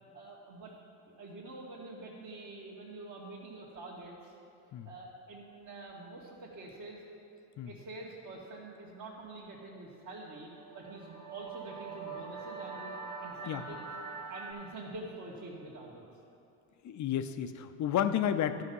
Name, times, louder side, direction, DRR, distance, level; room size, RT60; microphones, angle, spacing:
voice 1, 0.1-0.7 1.1-4.3 4.9-7.0 7.7-10.5 10.7-13.8 14.3-16.0, right 2 dB, 40° right, -6 dB, 1.8 m, -46 dB
sound 1, 10.3-14.5, right 4 dB, 80° right, 2.1 m, -43 dB
voice 2, 16.8-18.6, left 9 dB, 40° left, 9 dB, 0.7 m, -31 dB
13.0 x 5.6 x 5.5 m, 2.6 s
hypercardioid pair, 80°, 45 cm